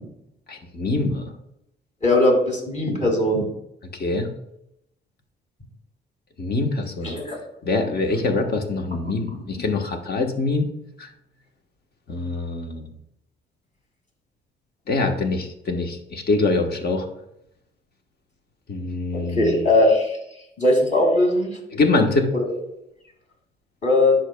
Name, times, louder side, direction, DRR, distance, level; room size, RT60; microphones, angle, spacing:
voice 1, 0.5-1.3 3.9-4.3 6.4-7.2 7.6-10.6 12.1-12.9 14.9-17.1 18.7-19.7 21.7-22.3, left 3 dB, 55° left, 4 dB, 1.2 m, -24 dB
voice 2, 2.0-3.5 7.0-7.4 9.3-9.4 19.1-20.2 20.6-21.6 22.3-22.4 23.8-24.1, left 1 dB, 40° left, 1 dB, 2.3 m, -19 dB
10.0 x 5.9 x 2.2 m, 0.81 s
cardioid pair, 90°, 20 cm